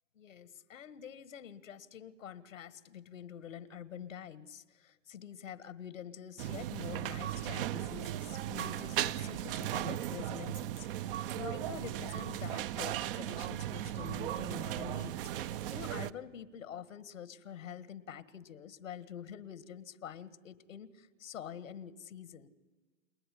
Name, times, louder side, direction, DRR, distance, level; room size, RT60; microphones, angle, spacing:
voice 1, 0.1-22.5, left 8 dB, 85° left, 16 dB, 1.6 m, -47 dB
sound 1, 6.4-16.1, right 12 dB, 45° right, 0.8 m, -37 dB
30.0 x 19.0 x 10.0 m, 1.3 s
hypercardioid pair, 130°, 39 cm